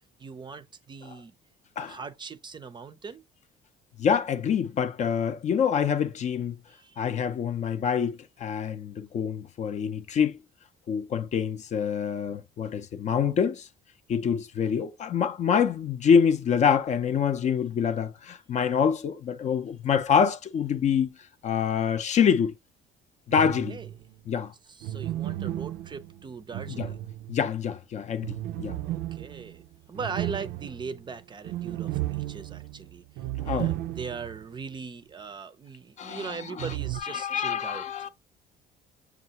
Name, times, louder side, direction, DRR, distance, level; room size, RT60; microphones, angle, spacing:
voice 1, 0.2-1.3 1.8-3.2 6.7-7.0 23.4-23.9 24.7-27.0 28.8-33.0 33.4-37.9, right 5 dB, 25° right, 0.5 m, -40 dB
voice 2, 4.0-6.6 7.0-10.4 10.9-13.7 14.1-21.1 21.4-22.5 23.3-23.8 24.3-24.5 26.7-26.9 27.3-28.8 33.5-33.7 36.0-36.7 37.0-38.1, left 7 dB, 45° left, 0.5 m, -26 dB
sound 1, 23.3-24.0 24.8-27.6 28.2-34.4 34.7-34.8 36.6-37.0, right 14 dB, 85° right, 0.4 m, -34 dB
6.5 x 2.4 x 2.8 m
cardioid pair, 110°, 17 cm